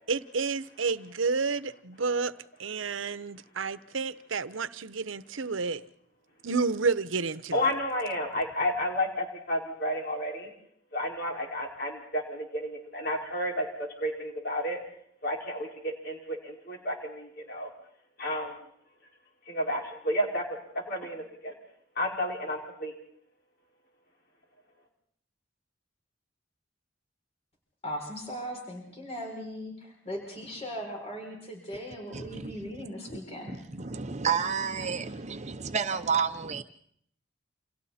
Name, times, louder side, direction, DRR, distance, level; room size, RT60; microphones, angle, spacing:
voice 1, 0.1-2.3 2.6-5.8 6.4-7.6, right 4 dB, 85° right, 0.9 m, -30 dB
voice 2, 7.5-10.5 10.9-14.8 15.2-17.7 18.2-18.6 19.5-20.4 20.7-21.5 22.0-22.9, left 1 dB, 55° left, 5.4 m, -31 dB
voice 3, 27.8-33.6, equal, 30° left, 6.8 m, -38 dB
voice 4, 32.1-32.7 33.6-36.6, right 6 dB, 35° right, 0.8 m, -30 dB
29.5 x 28.0 x 4.3 m
head